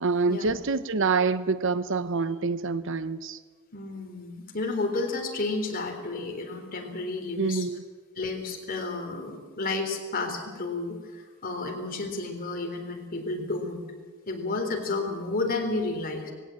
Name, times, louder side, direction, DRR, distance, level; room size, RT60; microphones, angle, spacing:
voice 1, 0.0-3.4 7.4-7.8, right 4 dB, 60° right, 14 dB, 0.8 m, -26 dB
voice 2, 3.7-7.7 8.2-13.9 14.3-16.3, left 3 dB, 45° left, 3 dB, 3.5 m, -31 dB
19.5 x 17.0 x 8.7 m, 1.5 s
head